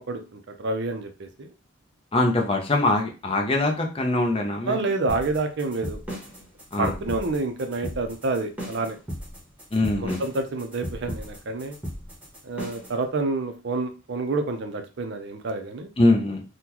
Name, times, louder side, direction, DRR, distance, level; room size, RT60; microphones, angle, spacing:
voice 1, 0.0-1.5 4.7-6.0 6.8-9.0 10.0-11.8 12.4-15.9, right 3 dB, 55° right, 7 dB, 0.5 m, -28 dB
voice 2, 2.1-4.9 6.7-6.9 9.7-10.2 16.0-16.4, left 2 dB, 25° left, 2 dB, 0.5 m, -23 dB
sound 1, 5.1-13.0, equal, 5° right, 1.0 m, -36 dB
3.7 x 2.2 x 2.9 m, 0.31 s
head